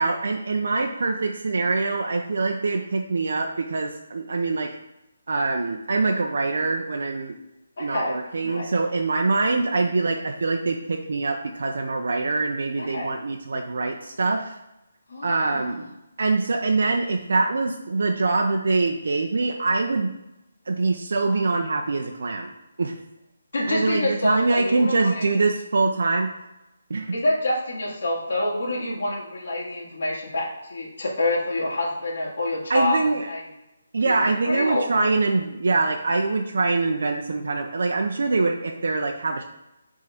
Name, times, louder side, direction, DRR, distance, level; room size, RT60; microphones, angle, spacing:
voice 1, 0.0-4.7 5.3-7.3 7.8-14.6 15.2-15.9 16.2-20.1 20.7-22.5 22.8-23.0 23.7-26.3 26.9-27.1 32.7-33.3 33.9-39.4, right 3 dB, 65° right, 2 dB, 0.6 m, -24 dB
voice 2, 7.8-8.2 8.4-8.7 12.8-13.1 15.1-15.8 23.5-25.3 27.1-33.4 34.0-34.1 34.4-34.8, left 1 dB, 60° left, -6 dB, 2.4 m, -27 dB
6.2 x 3.7 x 5.9 m, 0.94 s
hypercardioid pair, 170°, 0 cm